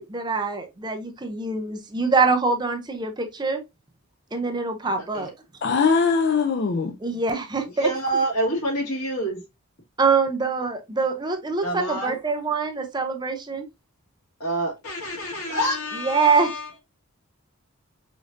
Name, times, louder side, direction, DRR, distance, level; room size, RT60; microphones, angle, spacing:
voice 1, 0.0-3.6 4.3-5.3 7.0-7.9 10.0-13.7 15.9-16.6, right 4 dB, 20° right, 0.5 m, -24 dB
voice 2, 5.6-6.9, left 5 dB, 50° left, 0.4 m, -21 dB
voice 3, 7.6-9.4 11.6-12.1 14.4-16.7, right 1 dB, 85° left, 1.8 m, -27 dB
5.0 x 2.6 x 2.5 m
head